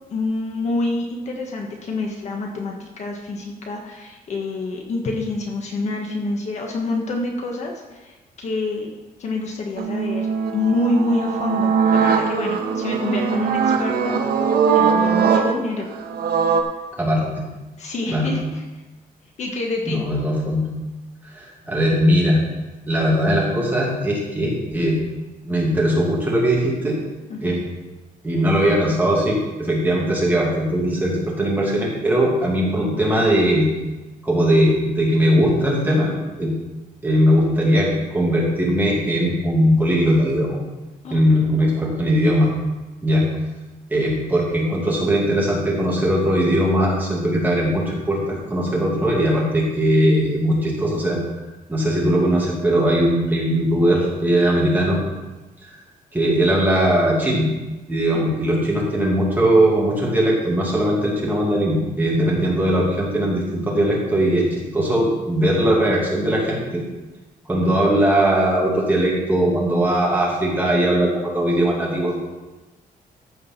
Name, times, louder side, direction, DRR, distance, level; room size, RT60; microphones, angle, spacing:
voice 1, 0.1-10.3 10.5-14.1 14.7-15.9 17.8-18.6 19.4-20.0 27.3-27.6 41.0-41.2 58.1-58.2 67.7-67.9, left 2 dB, 50° left, 1 dB, 1.5 m, -27 dB
sound 1, 9.8-16.6, right 6 dB, 85° right, 1.1 m, -20 dB
voice 2, 16.9-17.4 18.1-18.3 19.9-20.7 21.3-22.4 22.9-25.0 25.4-27.0 27.4-27.6 28.2-33.7 34.2-36.1 36.4-36.5 37.0-40.6 41.1-42.5 43.0-43.3 43.9-51.2 51.7-55.0 56.1-57.5 57.9-66.8 67.5-72.2, equal, 10° right, -4 dB, 2.4 m, -19 dB
14.5 x 5.0 x 5.9 m, 1.1 s
cardioid pair, 175°, 15 cm